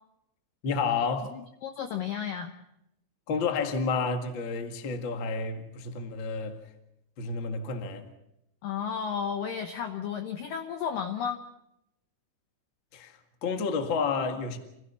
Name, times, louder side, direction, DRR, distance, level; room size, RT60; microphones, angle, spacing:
voice 1, 0.6-1.3 3.3-6.6 7.2-8.1 12.9-14.6, left 4 dB, 60° left, 1.2 m, -30 dB
voice 2, 1.3-2.5 8.6-11.4, left 7 dB, 75° left, 2.0 m, -33 dB
27.5 x 16.5 x 7.0 m
omnidirectional pair, 5.4 m